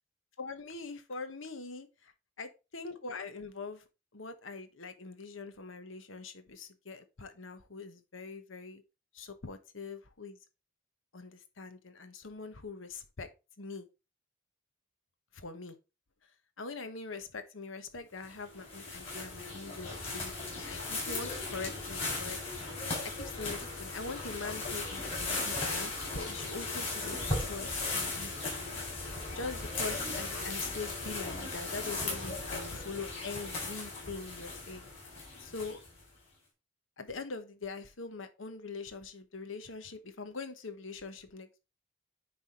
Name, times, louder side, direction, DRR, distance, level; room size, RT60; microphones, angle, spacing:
voice 1, 0.4-2.1 2.4-2.5 2.7-3.8 4.1-8.8 9.1-10.4 11.1-13.3 13.6-13.9 15.3-15.8 16.6-22.7 23.2-28.3 29.3-34.9 35.4-35.8 37.0-41.6, left 4 dB, 90° left, 1.1 m, -43 dB
sound 1, 18.2-36.0, left 3 dB, 30° left, 4.0 m, -37 dB
9.6 x 3.5 x 4.2 m
head